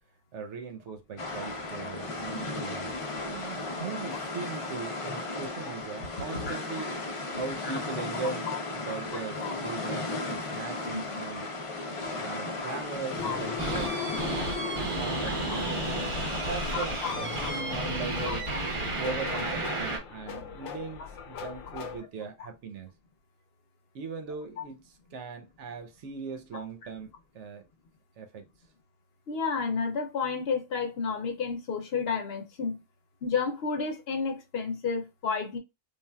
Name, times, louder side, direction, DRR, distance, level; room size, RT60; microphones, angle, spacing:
voice 1, 0.3-3.0 3.2-11.5 12.2-14.2 14.8-15.7 16.1-22.9 23.9-24.8 25.1-27.6 28.2-28.4, right 5 dB, 85° right, 1.0 m, -39 dB
sound 1, 1.2-17.6, left 2 dB, 45° left, 0.4 m, -35 dB
sound 2, 13.2-22.0, left 5 dB, 85° left, 1.0 m, -39 dB
sound 3, 13.6-20.0, right 2 dB, 35° right, 0.6 m, -32 dB
voice 2, 16.7-17.2 17.4-17.5 18.3-18.6 24.6-24.7 26.5-26.6 29.3-32.8 33.2-35.6, left 5 dB, 65° left, 0.8 m, -31 dB
3.4 x 2.3 x 2.2 m
omnidirectional pair, 1.2 m